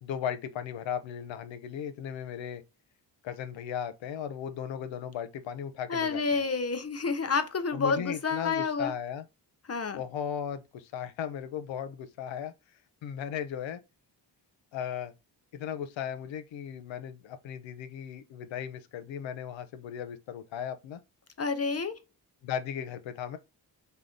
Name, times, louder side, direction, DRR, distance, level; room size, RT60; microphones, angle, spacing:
voice 1, 0.0-2.6 3.2-6.4 7.7-9.2 9.9-12.5 13.0-13.8 14.7-15.1 15.5-21.0 22.4-23.4, left 8 dB, 90° left, 0.6 m, -36 dB
voice 2, 5.9-8.9 9.7-10.0 21.4-21.9, left 4 dB, 35° left, 0.6 m, -29 dB
3.4 x 2.1 x 3.7 m
cardioid pair, 60°, 45 cm